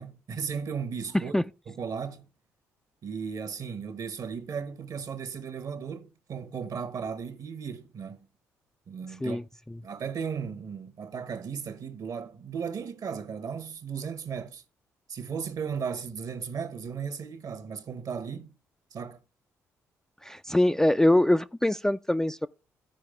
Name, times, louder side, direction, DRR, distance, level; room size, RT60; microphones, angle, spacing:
voice 1, 0.0-1.4 1.7-2.3 3.0-8.3 8.9-9.4 9.8-14.6 15.1-18.5 18.9-19.2, right 6 dB, 50° right, 1.1 m, -36 dB
voice 2, 20.2-22.5, left 1 dB, 5° left, 0.4 m, -23 dB
14.5 x 4.8 x 3.5 m
hypercardioid pair, 50°, 8 cm